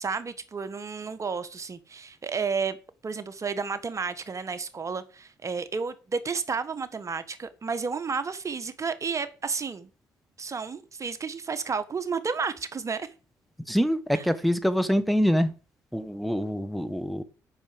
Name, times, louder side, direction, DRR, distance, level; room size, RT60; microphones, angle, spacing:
voice 1, 0.0-2.8 3.0-9.9 10.4-13.1, right 5 dB, 40° right, 1.4 m, -31 dB
voice 2, 13.7-15.5 15.9-17.2, equal, ahead, 1.4 m, -25 dB
9.0 x 6.2 x 7.7 m
supercardioid pair, 60°, 8 cm